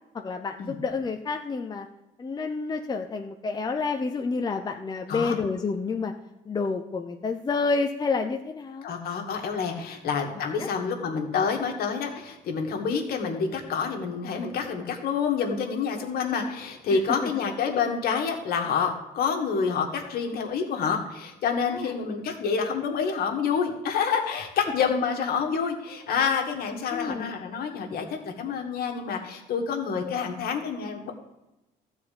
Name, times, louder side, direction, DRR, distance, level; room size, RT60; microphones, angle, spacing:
voice 1, 0.1-1.9 2.2-6.1 6.5-8.9 10.6-10.7 16.9-17.3 21.7-21.9 26.9-27.4, left 4 dB, 25° left, 4 dB, 0.7 m, -29 dB
voice 2, 8.8-31.1, left 6 dB, 65° left, 3 dB, 2.0 m, -28 dB
13.5 x 4.5 x 8.5 m, 0.96 s
cardioid pair, 110°, 17 cm